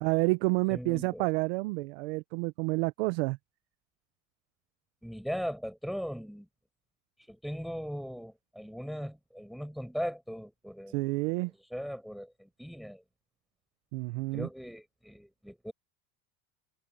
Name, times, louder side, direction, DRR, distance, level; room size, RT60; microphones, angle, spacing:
voice 1, 0.0-3.4 10.9-11.5 13.9-14.5, right 25 dB, 85° right, 0.8 m, -29 dB
voice 2, 0.7-1.3 5.0-6.5 7.3-13.0 14.3-15.7, equal, ahead, 5.3 m, -39 dB
cardioid pair, 175°, 30 cm